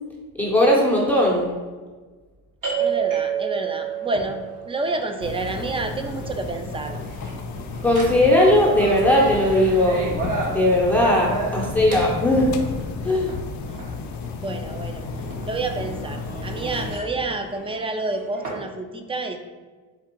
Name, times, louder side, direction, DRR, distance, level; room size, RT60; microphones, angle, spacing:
voice 1, 0.4-1.5 7.8-10.1 10.5-12.6 13.0-13.3, left 1 dB, 5° left, -3 dB, 0.8 m, -18 dB
sound 1, 2.6-18.6, right 5 dB, 50° right, 1.3 m, -32 dB
voice 2, 2.8-7.0 13.0-13.3 14.4-15.1 15.4-19.4, right 3 dB, 15° right, 6 dB, 0.3 m, -29 dB
sound 2, 5.2-17.0, left 4 dB, 45° left, 0.5 m, -33 dB
4.4 x 2.4 x 4.5 m, 1.4 s
supercardioid pair, 90°, 41 cm